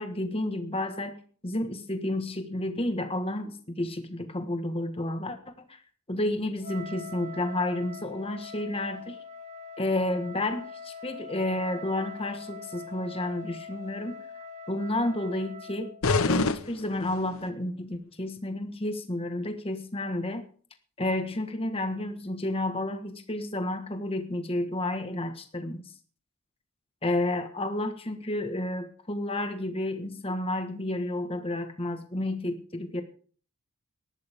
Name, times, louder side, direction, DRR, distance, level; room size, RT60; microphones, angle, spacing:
voice 1, 0.0-5.8 6.1-9.2 9.8-14.3 14.7-15.9 16.3-20.4 21.0-25.9 27.0-33.0, left 1 dB, 25° left, 7 dB, 1.5 m, -31 dB
Wind instrument woodwind instrument, 6.6-16.0, left 3 dB, 35° right, 2.1 m, -43 dB
sound 1, 16.0-17.5, left 3 dB, 70° left, 0.8 m, -27 dB
18.5 x 13.0 x 3.6 m, 0.43 s
head